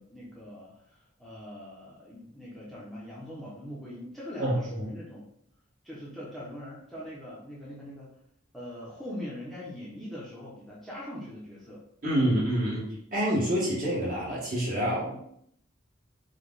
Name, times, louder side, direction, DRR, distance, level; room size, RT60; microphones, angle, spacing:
voice 1, 0.0-5.3 5.8-8.1 8.5-11.8 14.9-15.2, left 1 dB, ahead, -7 dB, 0.9 m, -42 dB
voice 2, 4.4-4.8 12.0-15.1, right 1 dB, 45° right, -6 dB, 1.9 m, -27 dB
4.9 x 2.4 x 4.0 m, 0.69 s
head